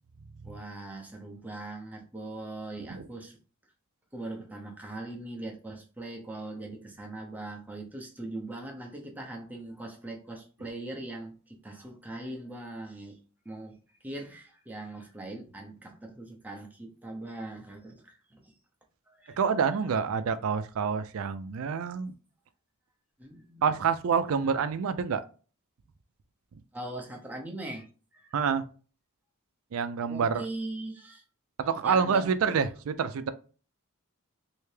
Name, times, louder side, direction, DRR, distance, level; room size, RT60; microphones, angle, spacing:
voice 1, 0.4-3.4 4.1-13.2 13.4-18.5 19.1-19.4 23.2-23.9 24.5-24.6 24.8-24.9 26.7-27.9 28.1-28.5 30.1-31.2 31.8-32.6, right 2 dB, 10° right, 0.6 m, -41 dB
voice 2, 19.4-22.1 23.6-25.2 28.3-28.6 29.7-30.5 31.6-33.3, right 6 dB, 65° right, 0.4 m, -27 dB
3.3 x 2.7 x 3.2 m
head